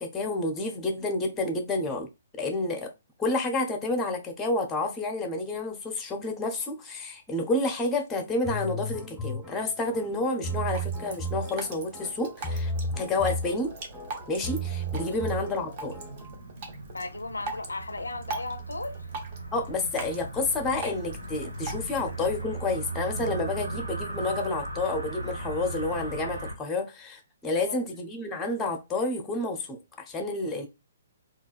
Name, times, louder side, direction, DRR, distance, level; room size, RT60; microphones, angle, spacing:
voice 1, 0.0-2.1 2.4-2.9 3.2-13.7 14.3-16.0 19.5-30.7, left 2 dB, 15° left, 0.7 m, -30 dB
sound 1, 8.4-16.4, right 1 dB, 10° right, 1.7 m, -34 dB
Drip, 10.4-22.4, right 3 dB, 40° right, 0.7 m, -42 dB
sound 2, 12.4-26.5, right 2 dB, 80° right, 1.1 m, -38 dB
voice 2, 16.9-19.0 27.6-27.8, left 2 dB, 75° left, 0.4 m, -36 dB
3.7 x 2.4 x 2.3 m
figure-of-eight pair, 125°, 0 cm